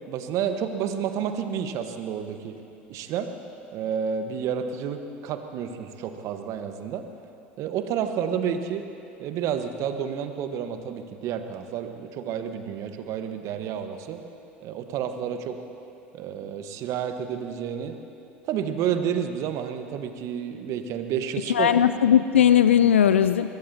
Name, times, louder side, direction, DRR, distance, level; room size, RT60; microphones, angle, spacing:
voice 1, 0.1-2.6 2.9-3.3 3.7-7.0 7.6-8.9 9.2-14.2 14.6-15.6 16.1-17.9 18.4-21.7, right 8 dB, 55° right, 8 dB, 1.2 m, -30 dB
voice 2, 21.5-23.5, left 9 dB, 85° left, 12 dB, 0.3 m, -18 dB
23.5 x 21.5 x 2.8 m, 2.7 s
hypercardioid pair, 70°, 6 cm